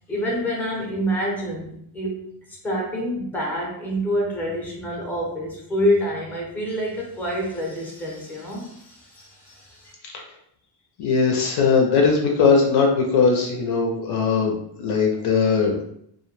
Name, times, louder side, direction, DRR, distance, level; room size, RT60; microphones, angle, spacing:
voice 1, 0.1-9.9, equal, 5° left, -2 dB, 0.6 m, -27 dB
voice 2, 11.0-14.5 14.8-15.8, left 5 dB, 55° left, 1 dB, 0.6 m, -19 dB
2.1 x 2.1 x 3.0 m, 0.71 s
cardioid pair, 125°, 47 cm